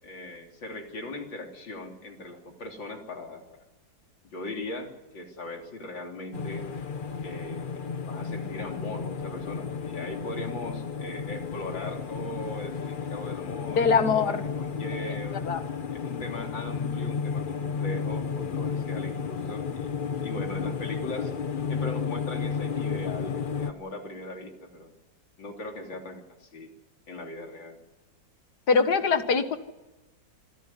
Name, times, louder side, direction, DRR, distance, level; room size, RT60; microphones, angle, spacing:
voice 1, 0.0-3.4 4.3-6.7 7.2-15.5 15.9-21.3 21.7-24.9 25.4-26.7 27.1-27.8, left 1 dB, 80° left, 2 dB, 3.9 m, -39 dB
sound 1, 6.3-23.7, left 6 dB, 40° left, 0.7 m, -32 dB
voice 2, 13.8-14.4 15.0-15.2 15.4-15.6 28.7-29.6, left 5 dB, 60° left, 9 dB, 2.0 m, -23 dB
25.5 x 15.0 x 9.9 m, 1.1 s
omnidirectional pair, 2.0 m